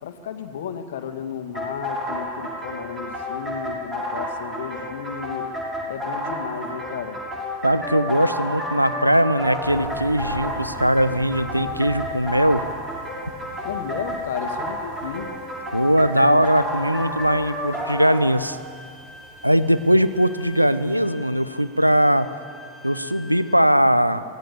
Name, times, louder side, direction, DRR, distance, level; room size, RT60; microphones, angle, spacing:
voice 1, 0.0-5.5 5.9-7.2 13.6-15.3, left 7 dB, 60° left, 8 dB, 1.8 m, -33 dB
sound 1, 1.5-18.3, equal, 15° right, 6.6 m, -30 dB
voice 2, 7.6-12.6 15.7-18.6 19.4-22.3 22.8-24.2, equal, 90° right, 13 dB, 0.8 m, -20 dB
sound 2, 9.6-21.0, right 2 dB, 40° right, 4.8 m, -43 dB
Bowed string instrument, 18.4-23.5, left 2 dB, ahead, 1.8 m, -45 dB
24.0 x 18.0 x 7.0 m, 2.1 s
figure-of-eight pair, 90°, 0 cm